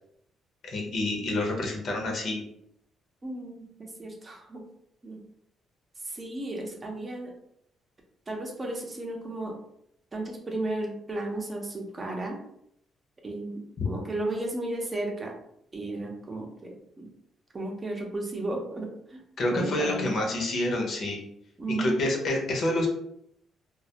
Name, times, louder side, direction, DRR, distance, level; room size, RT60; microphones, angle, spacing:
voice 1, 0.6-2.4 13.8-13.9 19.4-21.2 21.7-22.9, left 1 dB, 60° left, 0 dB, 0.7 m, -28 dB
voice 2, 3.2-4.6 5.0-5.2 6.0-7.3 8.3-9.5 10.1-12.4 13.2-15.3 15.7-17.1 17.5-19.2 19.5-20.1 21.6-22.1, right 2 dB, 30° right, 1 dB, 0.6 m, -34 dB
2.2 x 2.0 x 2.8 m, 0.73 s
cardioid pair, 90°, 0 cm